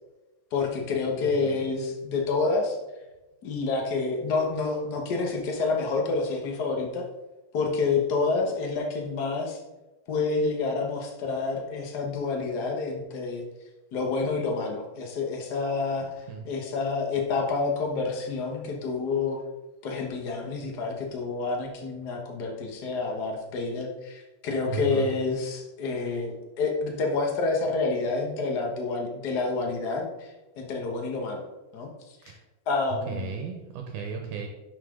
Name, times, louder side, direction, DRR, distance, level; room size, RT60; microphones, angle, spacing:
voice 1, 0.5-2.8 3.4-7.1 7.5-9.6 10.1-13.4 13.9-19.4 19.8-31.4 31.7-31.9 32.2-32.3 32.7-33.4, left 3 dB, 75° left, 1 dB, 0.9 m, -28 dB
voice 2, 1.2-1.6 16.3-16.5 24.7-25.1 32.3-32.4 33.1-34.5, right 5 dB, 75° right, 3 dB, 2.3 m, -35 dB
11.5 x 5.7 x 3.8 m, 1.0 s
omnidirectional pair, 3.9 m